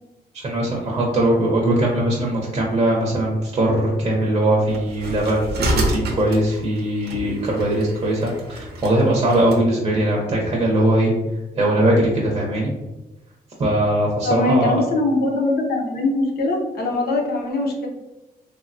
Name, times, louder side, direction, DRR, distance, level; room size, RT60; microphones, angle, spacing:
voice 1, 0.3-11.1 11.6-12.7 13.6-14.7, right 1 dB, 30° right, -3 dB, 0.7 m, -20 dB
sound 1, 4.7-9.6, right 1 dB, 85° right, 0.7 m, -28 dB
voice 2, 14.2-17.9, left 2 dB, 75° left, 0 dB, 0.7 m, -22 dB
3.4 x 2.1 x 2.5 m, 1.0 s
cardioid pair, 130°, 17 cm